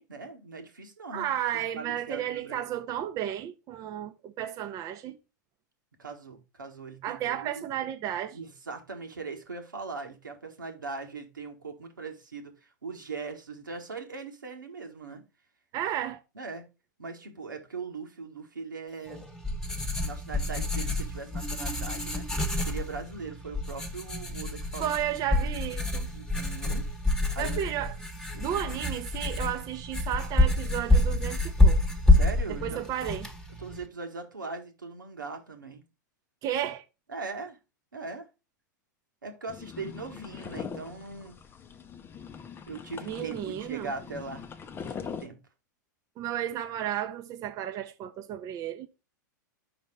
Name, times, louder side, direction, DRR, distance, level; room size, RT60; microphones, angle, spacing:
voice 1, 0.0-2.7 6.0-7.7 8.3-15.2 16.3-16.6 17.0-19.2 20.0-22.3 22.6-24.9 26.1-26.9 27.3-27.6 28.3-28.8 29.1-29.4 32.1-32.8 33.6-35.8 37.1-37.6 37.9-38.3 39.2-41.4 42.7-44.4 44.9-45.4, right 4 dB, 85° right, 1.4 m, -40 dB
voice 2, 1.1-5.2 7.0-8.4 15.7-16.2 24.8-26.1 27.4-28.0 28.4-31.8 32.6-33.3 36.4-36.8 43.1-43.9 46.2-48.9, right 11 dB, 35° right, 0.7 m, -33 dB
Writing, 19.1-33.9, left 2 dB, 5° left, 1.2 m, -27 dB
sound 1, 39.5-45.3, left 6 dB, 20° left, 0.6 m, -42 dB
5.4 x 4.1 x 5.1 m
figure-of-eight pair, 95°, 10 cm